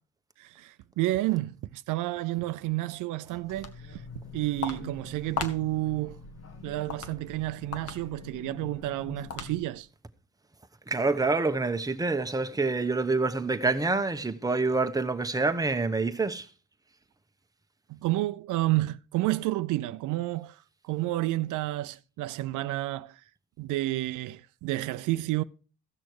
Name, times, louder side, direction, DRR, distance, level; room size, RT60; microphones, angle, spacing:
voice 1, 0.4-4.0 4.3-6.2 6.6-9.9 17.9-23.2 23.6-25.4, right 17 dB, 90° right, 0.5 m, -30 dB
Walk footsteps, 3.3-9.9, left 5 dB, 55° left, 1.4 m, -40 dB
voice 2, 10.9-16.5, right 3 dB, 10° right, 0.9 m, -27 dB
15.0 x 6.3 x 4.7 m
cardioid pair, 90°, 30 cm